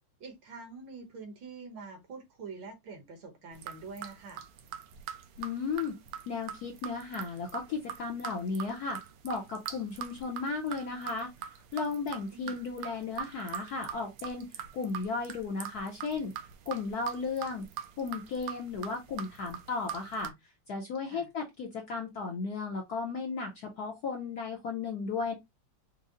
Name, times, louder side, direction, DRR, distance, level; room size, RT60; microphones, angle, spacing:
voice 1, 0.2-4.4 12.3-12.6 21.0-21.3, right 4 dB, 60° right, 1.7 m, -45 dB
sound 1, 3.5-20.3, right 9 dB, 85° right, 1.5 m, -42 dB
voice 2, 5.4-6.0 6.3-9.0 9.2-16.3 16.7-17.7 18.0-20.3 20.7-25.3, left 4 dB, 65° left, 1.0 m, -35 dB
5.3 x 2.0 x 3.6 m
omnidirectional pair, 2.4 m